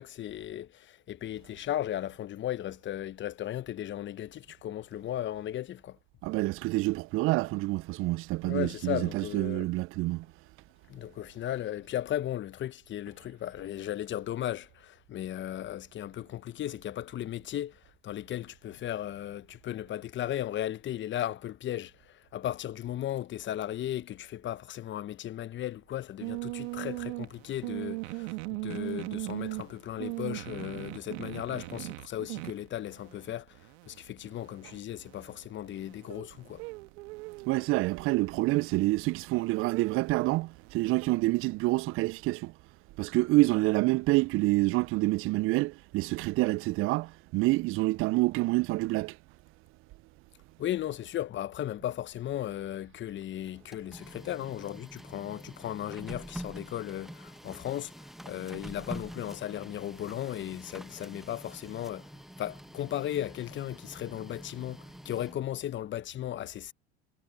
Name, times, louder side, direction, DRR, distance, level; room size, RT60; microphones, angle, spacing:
voice 1, 0.0-6.0 8.4-9.7 10.9-33.6 33.9-36.6 50.6-57.9 58.2-62.1 62.4-66.7, left 12 dB, 35° left, 1.0 m, -36 dB
voice 2, 6.2-10.3 37.5-42.5 43.0-49.2, right 21 dB, 40° right, 0.5 m, -27 dB
sound 1, 26.2-41.1, right 27 dB, 65° right, 2.1 m, -40 dB
Printer, 53.5-65.6, equal, ahead, 1.2 m, -46 dB
hypercardioid pair, 85°, 33 cm